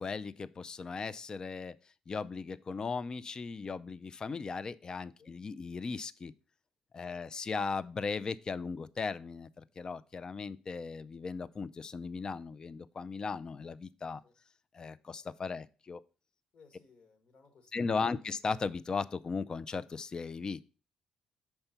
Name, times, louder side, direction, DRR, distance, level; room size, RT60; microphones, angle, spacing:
voice 1, 0.0-1.8 2.1-6.3 6.9-14.2 14.7-16.0 17.7-20.7, left 4 dB, 35° left, 16 dB, 0.4 m, -37 dB
voice 2, 16.5-17.9, left 4 dB, 55° left, 7 dB, 1.6 m, -62 dB
5.5 x 4.4 x 5.7 m, 0.35 s
supercardioid pair, 70°, 2 cm